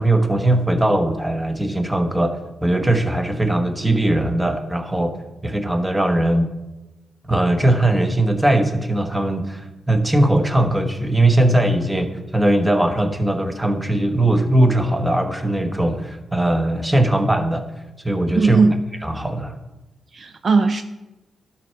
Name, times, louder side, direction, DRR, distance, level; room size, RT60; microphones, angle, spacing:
voice 1, 0.0-5.1 5.4-6.5 7.3-17.6 18.0-18.6 19.0-19.5, right 1 dB, 10° right, 5 dB, 1.2 m, -19 dB
voice 2, 18.4-18.8 20.1-20.8, right 4 dB, 50° right, 9 dB, 0.4 m, -17 dB
12.0 x 5.9 x 4.6 m, 1.0 s
cardioid pair, 75°, 0 cm